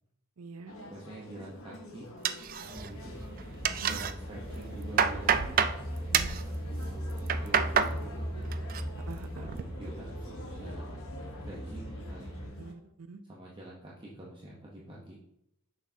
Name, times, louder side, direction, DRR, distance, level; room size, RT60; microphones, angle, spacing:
voice 1, 0.4-0.8 3.8-4.0 6.1-6.5 9.1-9.5 12.6-13.2, right 3 dB, 85° right, 9 dB, 0.6 m, -45 dB
sound 1, 0.7-12.7, left 1 dB, 70° left, 1.1 m, -48 dB
voice 2, 0.9-2.1 2.6-3.2 3.7-5.5 6.4-8.6 9.5-11.0 11.4-12.6 13.3-15.2, right 1 dB, 20° right, -5 dB, 0.9 m, -47 dB
sound 2, 2.2-3.1 3.4-4.1 4.6-5.8 6.1-6.4 7.1-7.9 8.3-8.8 9.2-9.6, right 7 dB, 40° right, 0.3 m, -28 dB
sound 3, 2.7-12.5, equal, 25° left, 2.5 m, -39 dB
6.4 x 6.2 x 2.8 m, 0.80 s
head